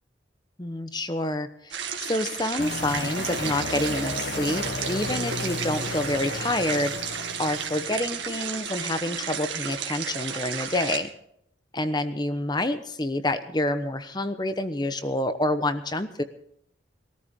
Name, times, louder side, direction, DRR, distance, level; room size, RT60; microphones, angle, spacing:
voice 1, 0.6-11.1 11.7-16.2, left 1 dB, 20° left, 10 dB, 1.0 m, -28 dB
sound 1, 1.7-11.0, right 7 dB, 80° right, 2.2 m, -33 dB
sound 2, 2.6-8.1, left 2 dB, 60° left, 1.1 m, -34 dB
22.0 x 14.0 x 3.8 m, 0.71 s
head